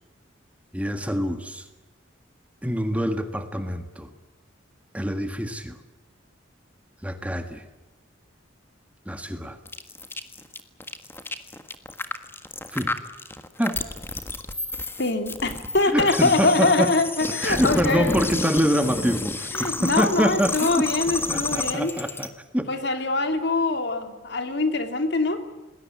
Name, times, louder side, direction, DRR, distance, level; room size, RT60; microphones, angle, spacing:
voice 1, 0.7-1.6 2.6-4.1 4.9-5.8 7.0-7.6 9.1-9.6 12.7-12.9 13.6-13.8 15.9-16.9 17.2-19.5 19.8-20.8 21.3-22.3 22.5-22.7, equal, 5° right, 8 dB, 1.7 m, -25 dB
sound 1, 9.7-22.3, left 2 dB, 10° left, 1.5 m, -31 dB
voice 2, 15.0-18.2 19.5-21.9 22.7-25.4, left 3 dB, 60° left, 7 dB, 2.7 m, -23 dB
27.0 x 20.5 x 8.5 m, 1.1 s
head